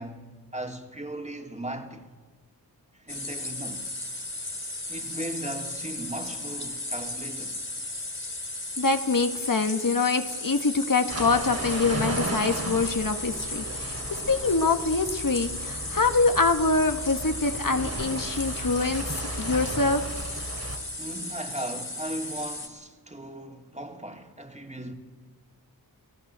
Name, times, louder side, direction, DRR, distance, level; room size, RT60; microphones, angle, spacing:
voice 1, 0.0-2.0 2.9-3.9 4.9-7.6 21.0-24.9, right 1 dB, 20° right, 3.0 m, -37 dB
sound 1, 3.1-22.7, left 2 dB, 30° left, 3.5 m, -35 dB
voice 2, 8.8-20.0, left 3 dB, 60° left, 1.7 m, -25 dB
sound 2, 11.1-20.8, right 2 dB, 40° right, 3.1 m, -35 dB
26.5 x 18.0 x 8.1 m
wide cardioid pair, 85°, 38 cm